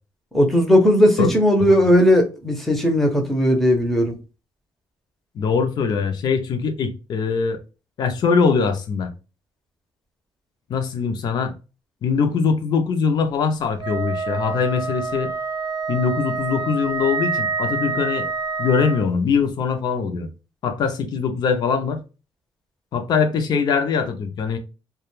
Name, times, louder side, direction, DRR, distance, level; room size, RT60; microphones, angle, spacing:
voice 1, 0.3-4.1, equal, 5° left, 0.6 m, -17 dB
voice 2, 5.4-7.6 8.0-9.1 10.7-11.5 12.0-15.3 15.9-18.3 18.6-20.3 20.6-22.0 22.9-24.6, left 5 dB, 50° left, 0.5 m, -22 dB
Wind instrument woodwind instrument, 13.8-19.1, right 4 dB, 35° right, 0.6 m, -27 dB
2.2 x 2.2 x 3.0 m
cardioid pair, 165°, 9 cm